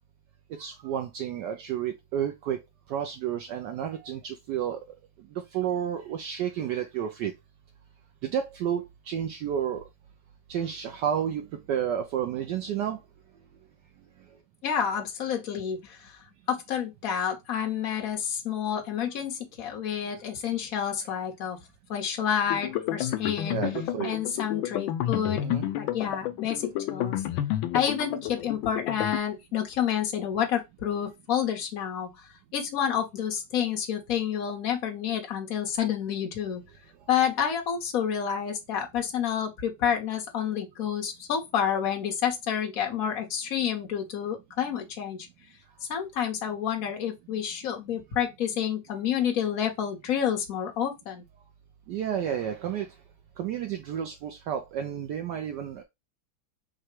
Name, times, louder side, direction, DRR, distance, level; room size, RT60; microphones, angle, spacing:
voice 1, 0.5-2.6 2.9-4.8 5.3-7.3 8.2-9.8 10.5-13.0 23.5-24.2 25.4-25.6 51.9-52.9 53.4-55.8, right 9 dB, 75° right, 1.1 m, -31 dB
voice 2, 14.6-16.2 16.5-21.6 21.9-23.6 24.0-25.5 25.8-27.2 27.7-36.6 37.1-45.3 45.8-51.2, left 8 dB, 50° left, 1.3 m, -29 dB
sound 1, 22.5-29.2, left 12 dB, 85° left, 1.4 m, -30 dB
4.8 x 2.2 x 4.4 m
omnidirectional pair, 2.1 m